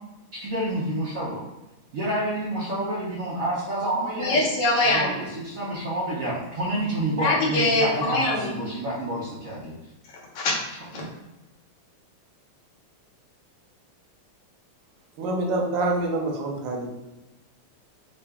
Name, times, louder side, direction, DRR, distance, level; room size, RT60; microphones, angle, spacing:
voice 1, 0.3-1.4 1.9-4.4 4.9-5.1 5.5-9.7 11.0-11.1, right 1 dB, 85° right, -7 dB, 0.7 m, -28 dB
voice 2, 4.0-5.3 7.1-8.6 10.0-10.5 10.9-11.0, left 2 dB, 65° left, -2 dB, 1.3 m, -24 dB
voice 3, 15.2-16.9, right 2 dB, 70° right, 1 dB, 1.2 m, -26 dB
3.8 x 2.2 x 3.4 m, 1.0 s
omnidirectional pair, 2.4 m